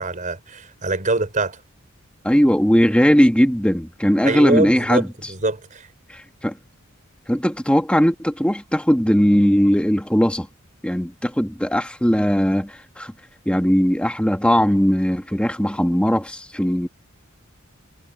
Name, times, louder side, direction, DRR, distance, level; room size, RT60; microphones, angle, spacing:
voice 1, 0.0-1.6 4.2-5.9, right 2 dB, 35° right, 4.2 m, -24 dB
voice 2, 2.2-5.1 6.1-6.6 7.3-10.5 10.8-13.1 13.5-16.9, equal, 5° left, 1.8 m, -19 dB
head